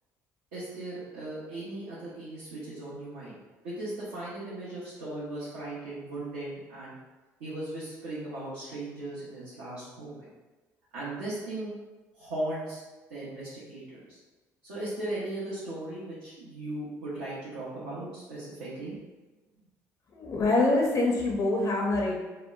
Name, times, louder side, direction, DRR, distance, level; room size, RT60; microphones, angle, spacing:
voice 1, 0.5-3.3 3.6-6.9 7.4-10.2 10.9-11.7 12.1-12.8 13.1-14.2 14.6-18.9, right 1 dB, 85° right, -11 dB, 0.7 m, -37 dB
voice 2, 20.1-22.2, left 2 dB, 45° left, -1 dB, 0.4 m, -25 dB
2.8 x 2.0 x 2.2 m, 1.2 s
hypercardioid pair, 55°, 8 cm